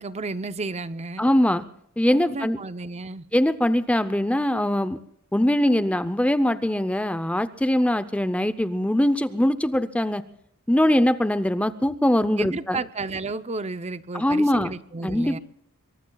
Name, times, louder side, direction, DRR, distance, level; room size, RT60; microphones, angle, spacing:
voice 1, 0.0-1.3 2.1-3.2 12.4-15.4, right 3 dB, 30° right, 13 dB, 0.6 m, -32 dB
voice 2, 1.2-1.6 2.0-2.6 3.3-5.0 5.3-10.2 10.7-12.8 14.1-14.7 15.0-15.4, left 1 dB, 5° left, 12 dB, 0.6 m, -22 dB
26.0 x 23.5 x 2.3 m, 0.72 s
head